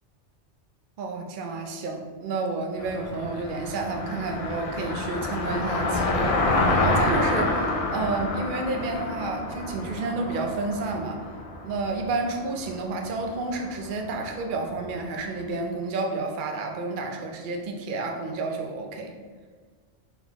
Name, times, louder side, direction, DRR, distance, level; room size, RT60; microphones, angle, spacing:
voice 1, 1.0-11.2 11.6-19.1, right 3 dB, 55° right, 2 dB, 0.7 m, -30 dB
Car passing by, 2.8-15.1, left 2 dB, 55° left, 0.4 m, -28 dB
4.0 x 3.9 x 2.9 m, 1.5 s
omnidirectional pair, 1.2 m